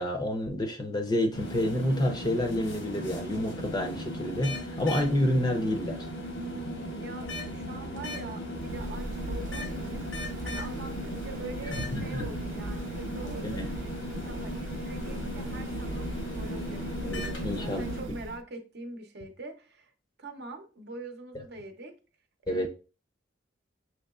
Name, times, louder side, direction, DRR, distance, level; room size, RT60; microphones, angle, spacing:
voice 1, 0.0-6.1 11.7-12.3 13.4-13.7 17.0-17.8 22.5-22.7, left 1 dB, 20° left, 0.6 m, -29 dB
sound 1, 1.3-18.0, equal, 90° left, 1.2 m, -37 dB
voice 2, 6.3-10.0 10.4-19.9 20.2-21.9 22.5-22.7, right 2 dB, 60° right, 0.8 m, -43 dB
sound 2, 8.6-18.4, right 2 dB, 85° right, 0.4 m, -39 dB
6.5 x 3.0 x 2.4 m
head